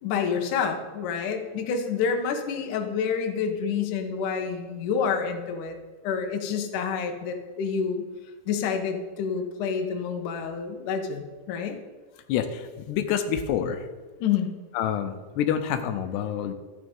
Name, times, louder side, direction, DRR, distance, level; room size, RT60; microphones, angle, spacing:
voice 1, 0.0-5.7 6.0-8.0 8.5-11.8 14.2-14.5, left 6 dB, 60° left, 4 dB, 2.5 m, -28 dB
voice 2, 12.3-13.9 14.7-16.5, left 9 dB, 85° left, 8 dB, 3.0 m, -27 dB
13.5 x 10.0 x 5.4 m, 1.4 s
omnidirectional pair, 4.7 m